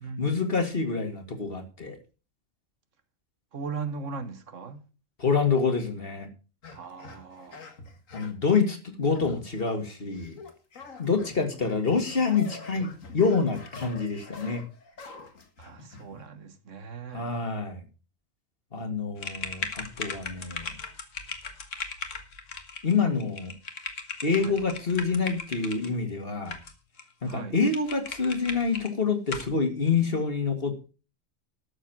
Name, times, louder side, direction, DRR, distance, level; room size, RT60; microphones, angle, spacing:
voice 1, 0.2-2.0 5.2-6.3 8.1-10.4 11.0-14.6 17.1-17.8 18.7-20.7 22.8-23.5 24.2-26.6 27.2-30.7, left 4 dB, 45° left, 2.3 m, -27 dB
voice 2, 3.5-4.8 6.7-7.6 15.6-17.3 24.4-24.6 27.3-27.6, right 5 dB, 70° right, 1.6 m, -38 dB
sound 1, 6.6-8.5 9.1-9.8 10.1-16.3, left 3 dB, 90° left, 2.1 m, -46 dB
sound 2, 19.2-25.9 26.5-27.0 27.3-27.4 27.7-28.9 29.3-29.5, left 4 dB, 70° left, 1.9 m, -37 dB
12.5 x 7.3 x 5.9 m
omnidirectional pair, 1.3 m